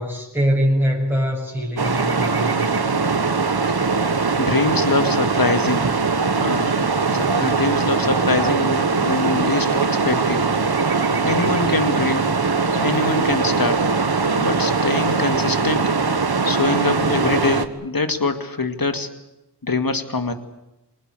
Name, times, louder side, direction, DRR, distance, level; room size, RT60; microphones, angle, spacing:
voice 1, 0.0-2.7, equal, 5° right, -1 dB, 7.2 m, -22 dB
sound 1, 1.8-17.7, right 4 dB, 65° right, 1.6 m, -21 dB
voice 2, 4.4-5.9 6.2-10.4 11.2-12.4 12.8-13.9 14.4-15.8 16.4-19.1 19.7-20.3, left 3 dB, 55° left, 8 dB, 2.4 m, -24 dB
25.5 x 20.0 x 8.1 m, 0.93 s
wide cardioid pair, 45°, 40 cm